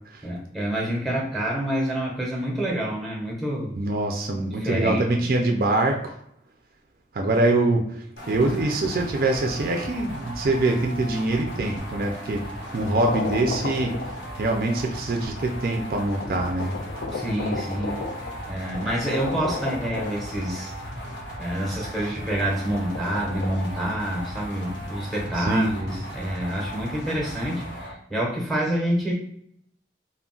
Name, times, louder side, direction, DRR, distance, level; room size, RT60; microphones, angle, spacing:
voice 1, 0.2-3.7 4.3-5.0 17.1-18.1 18.5-20.7 21.4-29.1, right 1 dB, ahead, -2 dB, 0.7 m, -27 dB
voice 2, 3.7-6.1 7.1-12.4 12.7-13.9 14.4-16.8 25.4-25.7, right 2 dB, 50° right, 2 dB, 0.4 m, -24 dB
sound 1, 8.2-27.9, equal, 80° left, 0.8 m, -37 dB
sound 2, 13.1-14.6 15.5-15.6 16.2-20.7 22.5-23.6, left 3 dB, 65° left, 0.3 m, -34 dB
2.3 x 2.0 x 3.7 m, 0.72 s
head